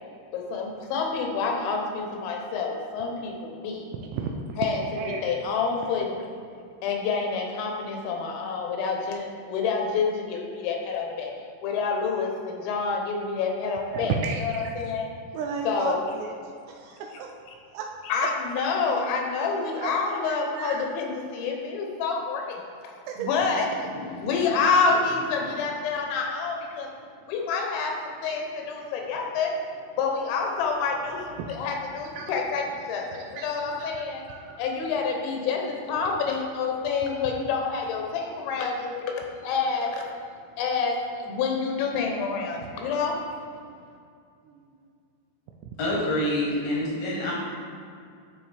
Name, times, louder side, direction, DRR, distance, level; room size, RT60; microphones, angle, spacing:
voice 1, 0.3-3.8 4.6-4.8 5.2-6.3 6.8-11.3 11.6-14.2 14.4-15.1 15.7-16.0 18.0-22.6 23.2-26.9 27.3-29.6 29.9-34.2 34.6-40.0 40.6-43.2, left 5 dB, 85° left, 1 dB, 3.3 m, -28 dB
voice 2, 4.1-4.6 5.0-5.4 5.9-6.1 13.9-14.7 15.3-16.4 16.7-17.3 17.7-17.9 19.8-20.9 23.1-23.3 31.4-31.5 32.2-32.3 33.1-33.5 33.8-33.9 34.3-34.6 42.8-42.9 44.5-44.7 47.2-47.3, right 5 dB, 80° right, 2 dB, 2.5 m, -34 dB
voice 3, 45.8-47.3, left 1 dB, 70° left, -4 dB, 2.3 m, -26 dB
11.5 x 5.0 x 3.4 m, 2.3 s
omnidirectional pair, 5.2 m